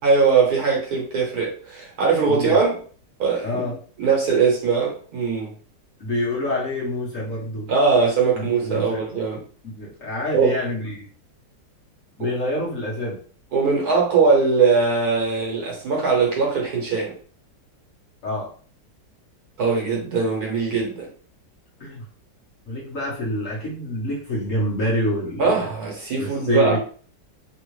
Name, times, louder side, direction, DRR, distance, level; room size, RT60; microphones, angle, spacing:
voice 1, 0.0-2.8 3.2-3.6 4.0-5.5 7.7-9.4 10.3-10.6 12.2-12.3 13.5-17.1 19.6-21.0 25.4-26.8, right 5 dB, 60° right, -2 dB, 1.3 m, -20 dB
voice 2, 2.3-2.6 3.4-3.7 6.0-7.7 8.3-9.0 9.6-11.1 12.2-13.2 18.2-18.5 21.8-22.0 22.7-25.7 26.2-26.8, left 1 dB, 50° left, -5 dB, 1.2 m, -27 dB
3.4 x 2.4 x 3.1 m, 0.42 s
omnidirectional pair, 2.0 m